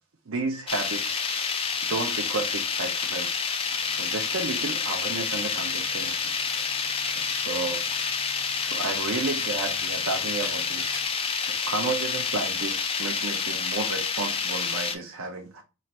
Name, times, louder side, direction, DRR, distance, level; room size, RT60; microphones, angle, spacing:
voice 1, 0.3-1.5 1.9-3.4 3.8-6.7 7.2-8.0 8.6-11.0 11.3-15.6, right 3 dB, 70° right, 0.6 m, -32 dB
sound 1, 0.7-14.9, left 5 dB, 25° left, 0.5 m, -28 dB
sound 2, 3.6-11.1, left 3 dB, 45° left, 1.7 m, -47 dB
3.1 x 2.5 x 4.2 m
head